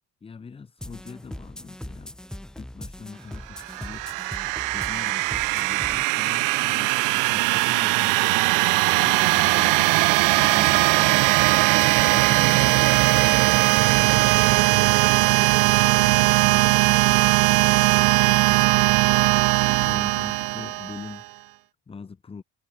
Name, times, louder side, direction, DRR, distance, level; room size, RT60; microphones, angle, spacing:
voice 1, 0.2-2.2 2.6-4.5 4.7-13.5 13.8-22.4, left 5 dB, 20° left, 1.7 m, -43 dB
sound 1, 0.8-6.0, left 1 dB, ahead, 0.8 m, -40 dB
sound 2, 3.6-21.2, right 26 dB, 80° right, 0.5 m, -20 dB
sound 3, 4.2-14.0, right 10 dB, 40° right, 5.4 m, -56 dB
cardioid pair, 165°, 31 cm